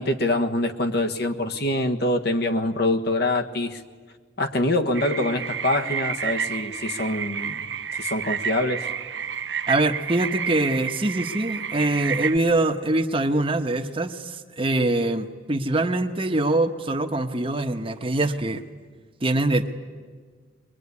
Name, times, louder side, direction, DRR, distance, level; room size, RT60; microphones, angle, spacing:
voice 1, 0.0-3.8 4.4-7.6 7.9-8.9, left 1 dB, 60° left, 6 dB, 1.5 m, -25 dB
sound 1, 4.9-12.4, right 7 dB, 70° right, 1.1 m, -30 dB
voice 2, 9.7-18.6 19.2-19.7, right 2 dB, 30° right, 6 dB, 1.2 m, -23 dB
23.0 x 22.5 x 9.7 m, 1.5 s
head